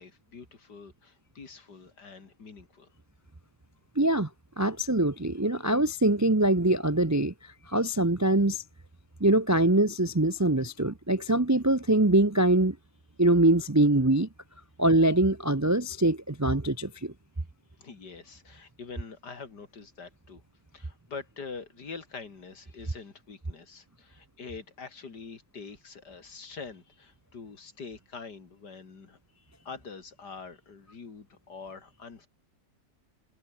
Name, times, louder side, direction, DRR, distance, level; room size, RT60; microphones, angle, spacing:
voice 1, 0.0-2.9 17.8-20.4 20.7-32.3, left 5 dB, 70° left, 3.3 m, -45 dB
voice 2, 4.0-4.3 4.6-7.3 7.7-8.6 9.2-12.8 13.2-14.3 14.8-17.1, right 1 dB, 25° right, 0.4 m, -23 dB
omnidirectional pair, 1.9 m